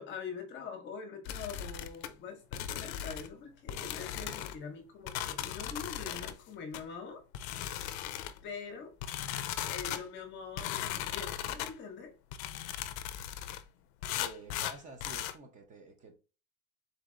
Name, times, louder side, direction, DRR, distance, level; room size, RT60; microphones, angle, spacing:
voice 1, 0.0-7.2 8.4-8.9 9.7-12.1, left 5 dB, 25° left, 0.9 m, -44 dB
sound 1, 1.2-2.1 2.5-3.3 3.7-4.5 5.1-6.3 6.7-6.8 7.3-8.4 9.0-10.0 10.6-11.7 12.3-13.6 14.0-15.3, left 11 dB, 50° left, 0.5 m, -37 dB
voice 2, 14.1-16.2, right 3 dB, 20° right, 0.6 m, -50 dB
4.0 x 3.3 x 3.7 m
supercardioid pair, 165°, 41 cm